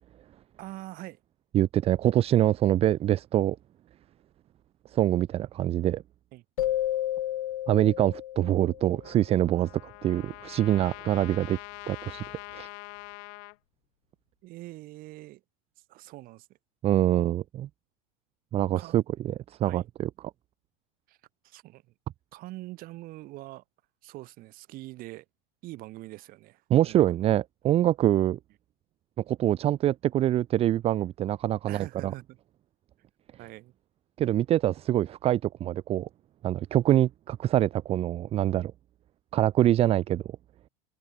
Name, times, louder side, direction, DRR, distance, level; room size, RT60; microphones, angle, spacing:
voice 1, 0.6-1.2 6.3-6.4 14.4-15.4 15.9-16.5 17.1-17.3 18.7-19.0 19.6-19.9 21.1-21.2 21.4-21.8 22.3-23.6 24.0-25.2 25.6-27.3 31.6-32.4 33.4-33.7, right 18 dB, 50° right, 6.6 m, -43 dB
voice 2, 1.5-3.6 4.9-6.0 7.7-9.7 10.0-11.6 11.9-12.2 12.5-12.7 16.8-17.7 18.5-20.1 26.7-28.4 29.3-32.1 34.2-36.1 36.4-38.7 39.3-40.2, right 12 dB, 35° right, 0.6 m, -25 dB
sound 1, 6.6-9.2, left 13 dB, 90° left, 2.0 m, -31 dB
Trumpet, 9.0-13.6, left 40 dB or more, 65° left, 3.6 m, -44 dB
open air
supercardioid pair, 105°, 18 cm